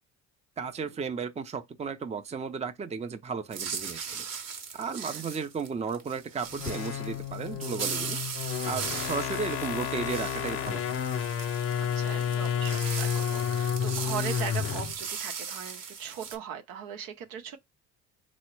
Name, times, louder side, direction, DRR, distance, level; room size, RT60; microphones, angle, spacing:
voice 1, 0.6-4.3 4.7-8.2 8.6-11.0, right 5 dB, 20° right, 0.5 m, -34 dB
sound 1, 3.5-16.4, right 6 dB, 50° right, 0.9 m, -38 dB
sound 2, 6.5-15.0, left 8 dB, 40° left, 0.5 m, -31 dB
voice 2, 11.8-17.6, right 8 dB, 75° right, 0.7 m, -39 dB
3.8 x 2.1 x 4.5 m
supercardioid pair, 75°, 35 cm